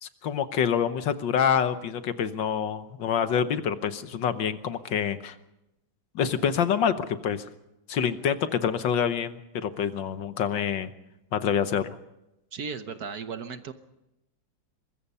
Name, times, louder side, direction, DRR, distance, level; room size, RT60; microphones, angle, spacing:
voice 1, 0.0-5.3 6.1-7.5 7.9-10.9 11.3-12.0, left 8 dB, 70° left, 11 dB, 1.7 m, -26 dB
voice 2, 12.5-13.7, right 5 dB, 55° right, 9 dB, 1.4 m, -35 dB
23.0 x 21.0 x 5.6 m, 0.92 s
omnidirectional pair, 2.2 m